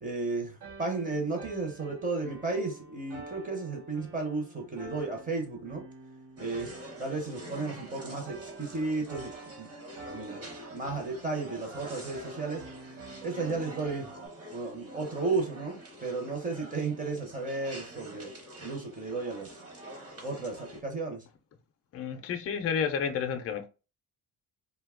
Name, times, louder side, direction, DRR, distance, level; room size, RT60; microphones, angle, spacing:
voice 1, 0.0-5.8 6.4-9.7 10.1-10.4 10.7-12.6 13.2-14.1 14.5-18.3 18.6-19.5 20.2-21.2, right 3 dB, 20° right, 0.7 m, -34 dB
sound 1, 0.6-14.3, right 2 dB, 75° right, 1.1 m, -48 dB
sound 2, 6.4-20.8, right 1 dB, 35° right, 1.0 m, -46 dB
voice 2, 21.9-23.7, left 7 dB, 35° left, 0.4 m, -31 dB
2.7 x 2.2 x 3.5 m
cardioid pair, 155°, 40 cm